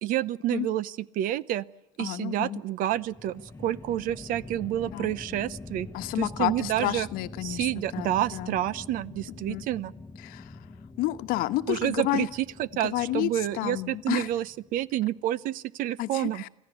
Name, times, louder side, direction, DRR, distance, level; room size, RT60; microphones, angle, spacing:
voice 1, 0.0-1.6 2.0-5.9 6.2-7.1 7.4-9.9 11.7-12.3 12.6-14.4 14.7-16.4, right 13 dB, 55° right, 19 dB, 0.8 m, -29 dB
voice 2, 2.0-2.6 4.9-5.1 5.9-8.6 9.5-9.6 10.2-10.7 11.0-12.3 12.8-14.3 16.0-16.5, left 16 dB, 60° left, 11 dB, 1.2 m, -30 dB
sound 1, 2.8-15.2, left 3 dB, 15° left, 1.2 m, -45 dB
25.5 x 15.0 x 8.3 m, 0.93 s
supercardioid pair, 105°, 17 cm